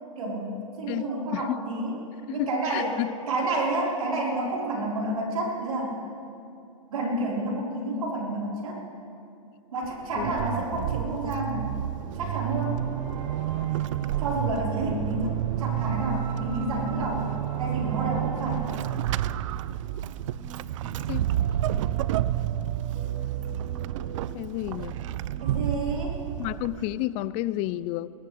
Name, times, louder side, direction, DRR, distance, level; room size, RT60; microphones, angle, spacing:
voice 1, 0.2-1.9 2.3-2.9 3.3-5.9 6.9-8.8 9.7-11.7 12.2-12.8 14.2-17.3 17.6-18.6 25.4-26.2, right 2 dB, 80° right, -3 dB, 4.5 m, -30 dB
voice 2, 0.9-1.6 2.3-3.1 10.2-10.3 10.8-10.9 21.1-21.2 24.3-25.0 26.4-28.1, left 16 dB, 35° left, 18 dB, 0.4 m, -31 dB
Vehicle / Accelerating revving vroom / Squeak, 9.8-27.0, right 12 dB, 60° right, 0.5 m, -30 dB
sound 1, 12.9-25.6, right 3 dB, 45° right, 2.3 m, -46 dB
21.0 x 18.5 x 3.4 m, 2.6 s
hypercardioid pair, 125°, 18 cm